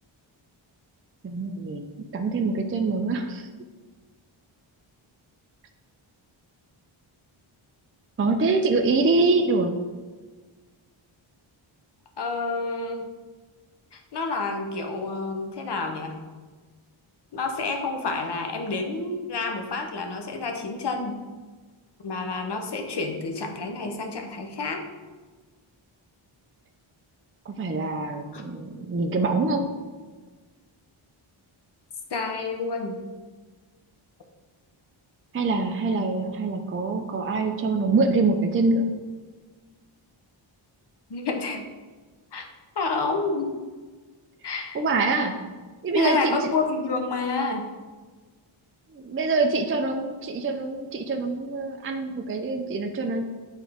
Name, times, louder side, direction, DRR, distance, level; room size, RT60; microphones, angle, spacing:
voice 1, 1.2-1.9 2.1-3.5 8.2-9.7 27.5-29.7 35.3-38.8 44.7-45.3 45.8-46.4 48.9-53.3, right 3 dB, 25° right, 4 dB, 0.4 m, -25 dB
voice 2, 12.2-13.1 13.9-16.2 17.3-21.2 22.0-24.8 28.3-28.4 32.1-33.0 41.1-41.6 42.3-42.5 42.8-43.5 44.4-44.8 45.9-47.7, left 3 dB, 55° left, 3 dB, 1.0 m, -29 dB
8.9 x 3.6 x 3.5 m, 1.4 s
wide cardioid pair, 110°, 49 cm